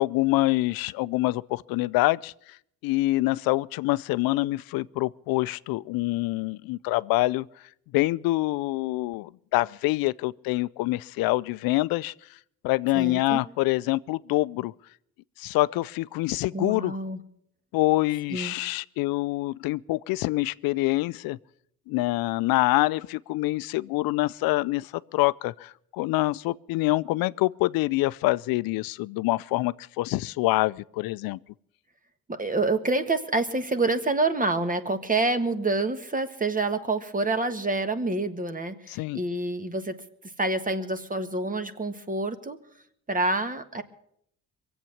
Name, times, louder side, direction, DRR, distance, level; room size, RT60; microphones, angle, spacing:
voice 1, 0.0-2.3 2.8-7.5 7.9-12.1 12.6-14.7 15.4-17.0 17.7-21.4 21.9-31.4 38.9-39.2, left 19 dB, 80° left, 0.5 m, -26 dB
voice 2, 12.9-13.4 16.5-17.2 18.3-18.6 32.3-40.0 40.4-42.6 43.1-43.8, right 2 dB, 25° right, 1.5 m, -27 dB
22.5 x 8.2 x 7.2 m
supercardioid pair, 70°, 35 cm